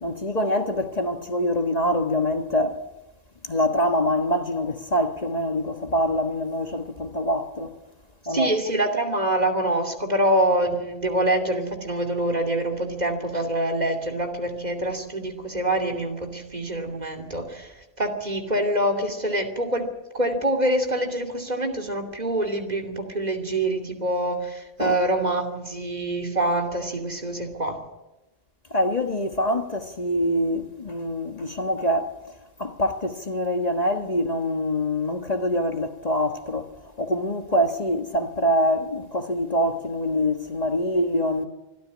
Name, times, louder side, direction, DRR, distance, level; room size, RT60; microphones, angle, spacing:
voice 1, 0.0-2.8 3.4-7.7 8.3-8.5 24.8-25.0 28.7-32.1 32.6-36.7 37.0-41.4, left 1 dB, 40° left, 1.4 m, -25 dB
voice 2, 8.3-19.9 20.1-27.8, right 1 dB, 40° right, 2.9 m, -25 dB
24.5 x 13.5 x 9.6 m
omnidirectional pair, 1.1 m